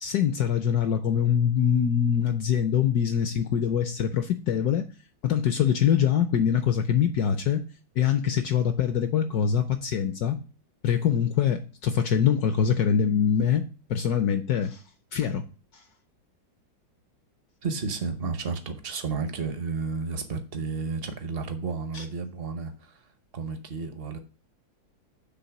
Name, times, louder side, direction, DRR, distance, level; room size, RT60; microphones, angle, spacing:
voice 1, 0.0-4.9 5.2-7.6 8.0-10.4 10.8-13.6 13.9-14.8 15.1-15.4 15.7-15.8 21.9-22.0, left 8 dB, 70° left, 0.9 m, -24 dB
voice 2, 17.6-23.1 23.3-24.2, right 4 dB, 55° right, 0.7 m, -32 dB
8.2 x 3.3 x 5.8 m
omnidirectional pair, 2.1 m